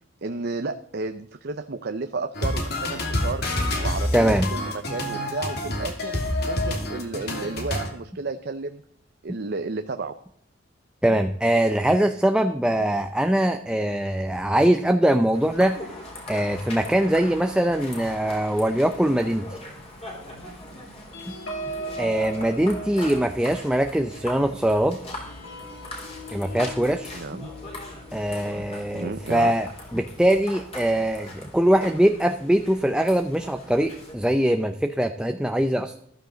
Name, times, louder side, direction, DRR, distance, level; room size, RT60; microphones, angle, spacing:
voice 1, 0.2-3.4 3.8-6.2 6.4-8.8 9.2-10.1 22.0-22.2 27.1-27.5 28.9-29.5, right 3 dB, 60° right, 8 dB, 0.7 m, -32 dB
sound 1, 2.4-7.9, left 1 dB, 60° left, 2.8 m, -27 dB
voice 2, 4.1-4.5 11.0-15.9 16.3-19.5 21.3-21.4 22.0-25.0 26.3-27.2 28.1-36.0, right 1 dB, 5° right, 7 dB, 0.6 m, -22 dB
sound 2, 15.3-34.1, left 1 dB, 35° left, 4.1 m, -41 dB
sound 3, 21.1-30.1 30.5-30.7 31.0-31.3, right 2 dB, 85° left, 3.0 m, -40 dB
14.5 x 13.0 x 4.0 m, 0.68 s
head